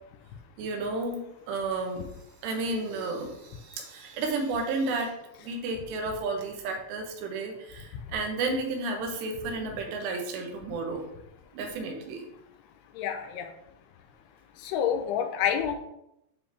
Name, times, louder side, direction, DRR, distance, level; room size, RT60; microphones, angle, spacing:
voice 1, 0.6-1.2 1.5-2.0 2.4-5.2 5.4-11.0 11.5-12.2, right 3 dB, 85° right, 2 dB, 3.1 m, -32 dB
voice 2, 13.0-13.5 14.6-15.8, left 8 dB, 80° left, 6 dB, 2.5 m, -28 dB
9.4 x 3.3 x 3.3 m, 0.82 s
omnidirectional pair, 4.9 m